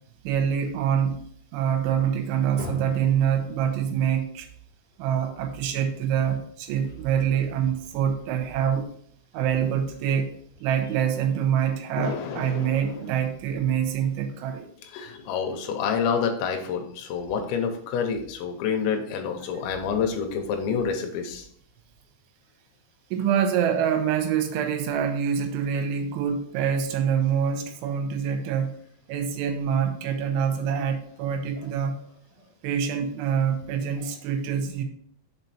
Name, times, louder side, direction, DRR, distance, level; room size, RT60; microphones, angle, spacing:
voice 1, 0.2-1.2 1.5-4.5 5.0-8.9 9.3-10.3 10.6-14.7 19.5-19.8 23.1-28.7 29.1-32.0 32.6-34.8, right 8 dB, 85° right, 6 dB, 3.1 m, -25 dB
sound 1, 2.2-5.5 6.6-8.5, left 1 dB, 55° left, 2.6 m, -44 dB
voice 2, 12.0-12.8 14.9-21.4, left 6 dB, 75° left, 4 dB, 3.1 m, -28 dB
6.9 x 4.5 x 4.1 m, 0.63 s
omnidirectional pair, 5.6 m